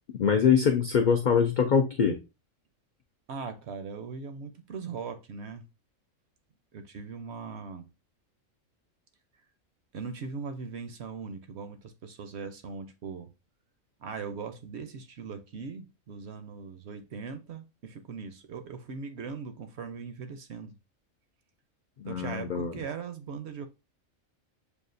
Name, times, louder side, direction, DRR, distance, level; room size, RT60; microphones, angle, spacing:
voice 1, 0.1-2.2 22.0-22.7, left 6 dB, 85° left, 0.4 m, -23 dB
voice 2, 3.3-5.7 6.7-7.9 9.9-13.3 14.0-20.8 22.0-23.7, right 5 dB, 65° right, 0.7 m, -40 dB
6.9 x 2.4 x 2.5 m
omnidirectional pair, 1.4 m